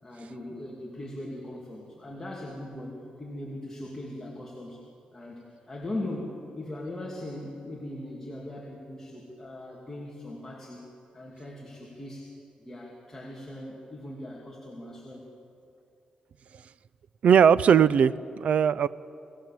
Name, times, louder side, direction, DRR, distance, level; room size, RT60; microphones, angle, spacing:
voice 1, 0.0-4.8 5.1-10.8 11.1-12.3 12.6-15.3, left 1 dB, 15° left, -3 dB, 2.7 m, -39 dB
voice 2, 17.2-18.9, right 7 dB, 65° right, 16 dB, 0.5 m, -19 dB
29.0 x 17.5 x 7.5 m, 2.6 s
wide cardioid pair, 145°, 2 cm